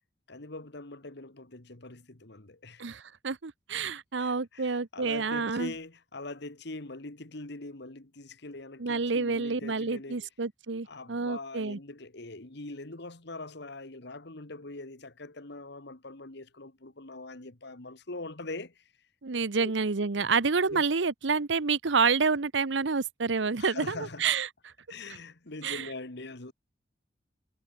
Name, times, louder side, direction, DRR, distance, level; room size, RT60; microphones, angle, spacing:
voice 1, 0.3-2.8 4.2-10.3 10.9-18.8 19.6-19.7 20.7-20.8 23.6-24.3 24.9-26.5, left 2 dB, 65° left, 2.0 m, -42 dB
voice 2, 2.8-5.7 8.8-11.8 19.2-24.5 25.6-25.9, right 4 dB, 70° right, 0.9 m, -28 dB
head